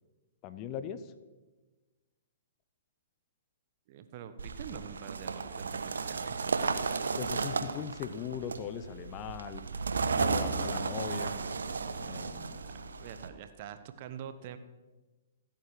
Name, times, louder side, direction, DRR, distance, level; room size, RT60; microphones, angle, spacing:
voice 1, 0.4-1.0 7.2-9.6 10.2-11.4 12.0-12.6, left 8 dB, 30° left, 12 dB, 1.0 m, -39 dB
voice 2, 3.9-6.4 12.6-12.7 13.0-14.6, right 9 dB, 40° right, 10 dB, 1.2 m, -45 dB
sound 1, 4.4-13.3, right 4 dB, 65° right, 1.2 m, -34 dB
27.0 x 9.3 x 4.9 m, 1.2 s
figure-of-eight pair, 115°, 0 cm